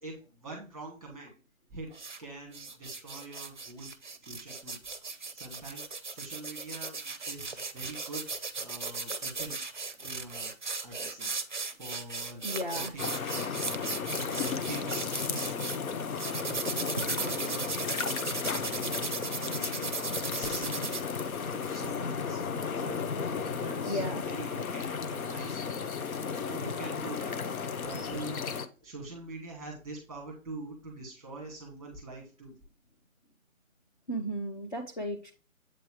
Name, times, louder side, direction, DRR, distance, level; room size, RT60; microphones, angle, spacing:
voice 1, 0.0-1.3 1.7-1.9 2.2-3.9 4.2-4.8 5.3-9.6 10.0-10.5 10.8-11.3 11.8-13.3 14.1-15.7 16.8-18.1 18.5-22.4 22.8-23.0 23.4-25.8 26.3-27.4 27.8-28.4 28.8-32.6, right 2 dB, ahead, -1 dB, 1.1 m, -44 dB
sound 1, 1.9-2.2 2.5-15.8 16.2-21.0, right 4 dB, 35° right, 0.5 m, -37 dB
voice 2, 12.4-12.9 16.8-16.9 17.2-17.4 23.9-24.2 34.1-35.3, equal, 35° left, 2 dB, 0.6 m, -35 dB
sound 2, 13.0-28.7, left 6 dB, 85° left, 0.9 m, -34 dB
7.9 x 3.1 x 4.6 m, 0.33 s
hypercardioid pair, 165°, 42 cm